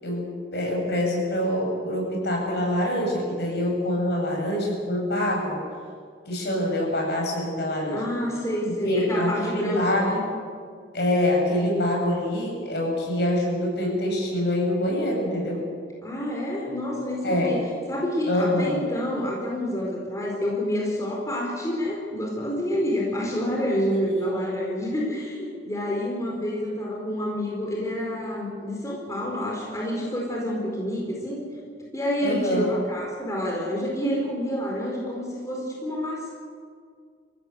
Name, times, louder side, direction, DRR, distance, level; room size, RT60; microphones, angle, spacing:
voice 1, 0.0-5.6 6.3-8.1 8.8-10.1 10.9-15.6 17.2-17.6 18.3-18.8 24.1-24.4 32.2-32.7, left 1 dB, 60° left, -1 dB, 7.5 m, -25 dB
voice 2, 7.9-10.2 16.0-17.6 17.9-31.4 31.9-36.3, equal, 15° left, -2 dB, 4.5 m, -28 dB
27.0 x 16.0 x 8.2 m, 2.1 s
head